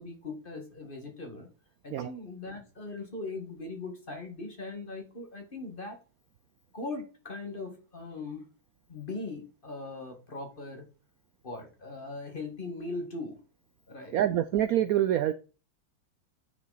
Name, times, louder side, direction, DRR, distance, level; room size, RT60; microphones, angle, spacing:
voice 1, 0.0-1.5 1.8-6.0 6.7-8.5 8.9-10.8 11.4-13.4 13.9-14.2, left 3 dB, 30° left, 4 dB, 1.7 m, -40 dB
voice 2, 14.1-15.3, right 12 dB, 80° right, 12 dB, 0.7 m, -26 dB
9.6 x 5.8 x 4.0 m, 0.35 s
omnidirectional pair, 2.1 m